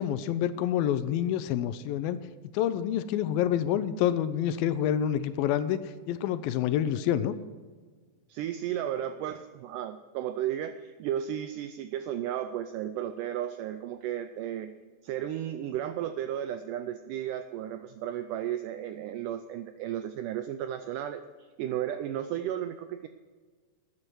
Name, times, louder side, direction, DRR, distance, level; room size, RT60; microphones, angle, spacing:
voice 1, 0.0-2.2 2.5-5.8 6.1-7.4, left 10 dB, 85° left, 13 dB, 2.3 m, -27 dB
voice 2, 8.3-14.7 15.0-23.1, right 11 dB, 85° right, 10 dB, 1.8 m, -34 dB
13.0 x 9.8 x 4.6 m, 1.4 s
omnidirectional pair, 4.2 m